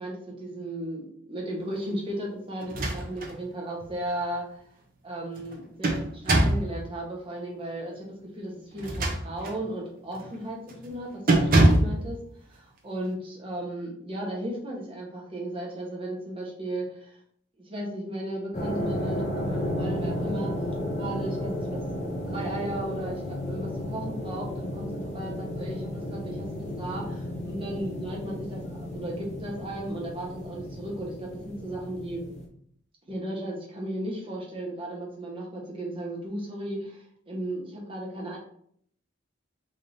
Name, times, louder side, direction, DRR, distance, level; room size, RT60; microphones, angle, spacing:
voice 1, 0.0-4.6 5.0-8.1 8.3-12.2 12.5-17.2 17.6-20.6 21.0-32.2 33.1-38.4, right 1 dB, 25° right, -2 dB, 0.9 m, -35 dB
sound 1, 2.6-3.4 3.8-3.9 5.4-6.7 8.7-9.6 10.1-10.4 10.7-10.9 11.3-12.0, right 1 dB, 45° right, 0.6 m, -23 dB
sound 2, 18.5-32.5, left 1 dB, 35° left, 0.6 m, -33 dB
3.2 x 2.7 x 3.8 m, 0.65 s
head